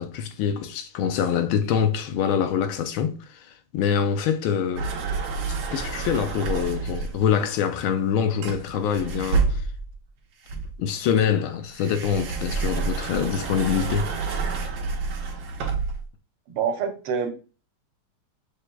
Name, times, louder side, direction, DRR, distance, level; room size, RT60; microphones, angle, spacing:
voice 1, 0.0-4.9 5.7-9.7 10.8-14.1, left 8 dB, 75° left, 1.3 m, -25 dB
sound 1, 4.8-7.3 8.4-9.9 10.5-16.1, right 4 dB, 65° right, 1.5 m, -28 dB
voice 2, 16.5-17.3, right 6 dB, 85° right, 1.7 m, -26 dB
6.8 x 3.3 x 2.2 m
omnidirectional pair, 2.4 m